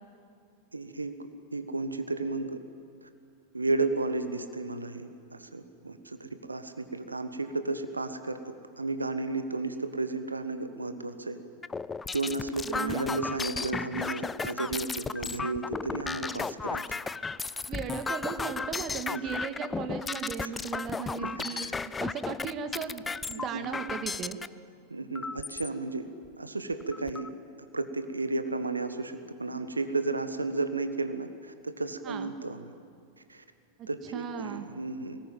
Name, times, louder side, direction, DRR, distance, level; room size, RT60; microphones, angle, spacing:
voice 1, 0.7-1.2 1.5-2.6 3.0-3.1 3.5-8.4 8.8-11.4 12.1-16.8 19.1-19.2 20.4-20.5 21.2-21.8 23.5-23.7 24.9-26.1 26.4-27.3 27.7-32.7 33.3-33.4 33.9-35.2, right 3 dB, 80° right, 10 dB, 1.4 m, -33 dB
sound 1, 11.6-24.5 25.1-25.7 26.2-26.3 26.6-27.3, left 4 dB, 15° left, 0.5 m, -34 dB
voice 2, 12.7-13.2 17.7-24.4 32.0-32.3 33.8-34.7, right 7 dB, 35° right, 8 dB, 1.8 m, -37 dB
22.0 x 19.0 x 9.1 m, 2.4 s
figure-of-eight pair, 90°, 0 cm